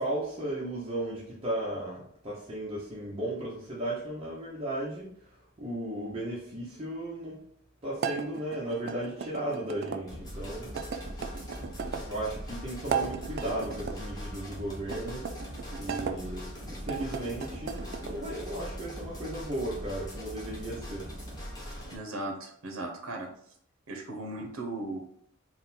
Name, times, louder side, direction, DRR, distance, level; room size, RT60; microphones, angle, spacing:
voice 1, 0.0-7.4 7.8-10.7 12.0-15.3 15.8-21.1, right 1 dB, 30° right, -6 dB, 0.8 m, -35 dB
sound 1, 8.0-10.0 10.7-12.1 12.8-14.0 14.8-16.2 16.8-18.1, right 6 dB, 50° right, 0.3 m, -36 dB
sound 2, 10.1-22.0, equal, 20° left, 1.1 m, -41 dB
voice 2, 21.9-23.3 23.9-25.1, right 2 dB, 80° right, 2 dB, 0.7 m, -37 dB
3.8 x 2.2 x 4.1 m, 0.65 s
head